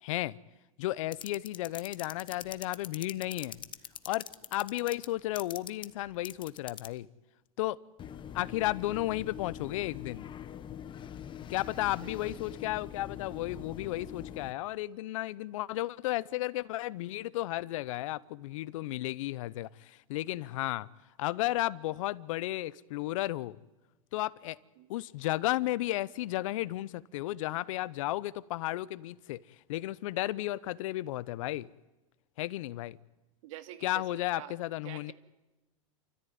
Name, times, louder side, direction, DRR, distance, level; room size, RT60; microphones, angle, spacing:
voice 1, 0.0-0.4 0.8-3.6 4.1-7.1 7.6-7.8 8.3-10.3 11.5-20.9 21.2-23.6 24.1-24.6 24.9-29.4 29.7-31.7 32.4-33.0 33.8-35.1, left 16 dB, 65° left, 0.8 m, -33 dB
sound 1, 1.1-7.0 8.0-14.5, left 9 dB, 25° left, 1.1 m, -43 dB
voice 2, 12.0-12.3 24.8-24.9 33.4-34.6 34.8-35.1, right 13 dB, 65° right, 2.2 m, -47 dB
29.5 x 14.0 x 9.4 m
hypercardioid pair, 115°, 18 cm